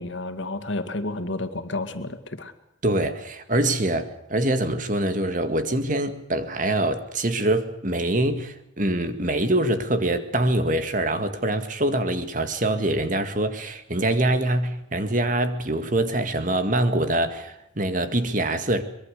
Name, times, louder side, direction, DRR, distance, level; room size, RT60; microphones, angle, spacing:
voice 1, 0.0-2.5, left 2 dB, 70° left, 2.2 m, -31 dB
voice 2, 2.8-18.8, right 1 dB, 40° right, 2.1 m, -24 dB
24.0 x 22.5 x 6.7 m
head